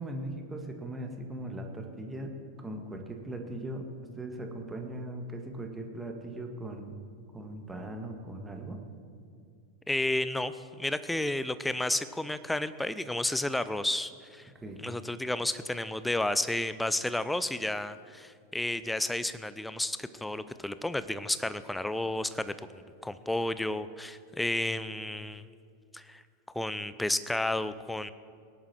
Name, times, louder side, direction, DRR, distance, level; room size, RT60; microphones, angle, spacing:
voice 1, 0.0-3.9 4.2-7.0 7.3-8.8 14.5-14.8, right 1 dB, 10° right, 3 dB, 1.8 m, -39 dB
voice 2, 9.9-14.5 14.8-22.5 23.0-25.5 25.9-26.2 26.5-28.1, left 1 dB, 5° left, 14 dB, 0.6 m, -32 dB
19.5 x 11.0 x 4.5 m, 2.3 s
figure-of-eight pair, 90°, 0 cm